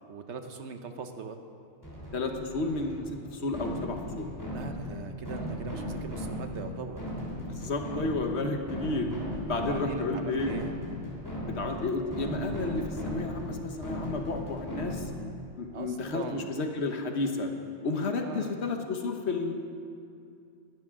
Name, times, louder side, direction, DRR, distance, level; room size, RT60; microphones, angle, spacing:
voice 1, 0.1-1.4 4.5-7.0 9.5-10.7 15.7-16.5 18.2-18.7, right 5 dB, 65° right, 7 dB, 1.2 m, -40 dB
sound 1, 1.8-15.3, equal, 20° left, 3.0 m, -37 dB
voice 2, 2.1-4.3 7.3-9.1 9.5-10.5 11.5-15.1 15.6-17.5 17.8-19.5, left 3 dB, 65° left, 4 dB, 1.3 m, -32 dB
19.5 x 13.0 x 3.7 m, 2.4 s
omnidirectional pair, 1.3 m